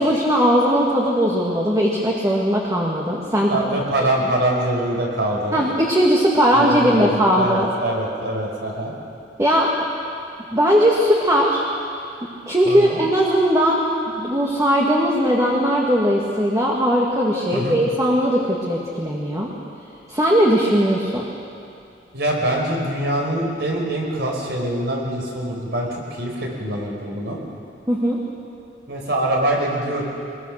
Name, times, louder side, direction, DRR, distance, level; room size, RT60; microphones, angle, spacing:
voice 1, 0.0-3.8 5.5-7.7 9.4-9.9 10.5-11.6 12.5-13.8 14.2-19.5 20.1-21.2 27.9-28.2, equal, 20° right, -3 dB, 2.0 m, -19 dB
voice 2, 3.5-5.6 6.5-8.9 12.6-13.0 17.5-17.8 22.1-27.4 28.9-30.0, right 1 dB, 65° right, -1 dB, 5.0 m, -24 dB
23.0 x 21.5 x 6.6 m, 2.5 s
head